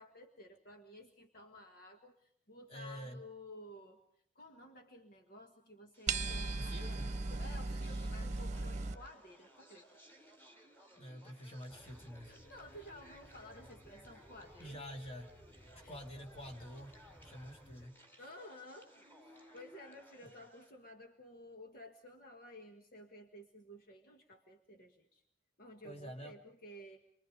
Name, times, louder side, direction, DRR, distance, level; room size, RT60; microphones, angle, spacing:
voice 1, 0.0-4.0 4.4-10.0 12.3-14.8 15.8-16.0 18.2-19.0 19.2-25.2 25.6-27.0, left 1 dB, 55° left, 4 dB, 1.6 m, -54 dB
voice 2, 2.7-3.2 6.6-7.1 11.0-12.3 14.6-15.4 15.7-18.0 25.8-26.4, equal, 35° left, 3 dB, 2.7 m, -48 dB
sound 1, 5.9-20.7, right 1 dB, 10° left, 3.7 m, -60 dB
sound 2, 6.1-8.9, right 3 dB, 40° right, 1.1 m, -37 dB
Quiet museum gallery, 11.7-17.9, equal, 5° right, 3.3 m, -60 dB
27.0 x 24.0 x 5.1 m, 0.64 s
head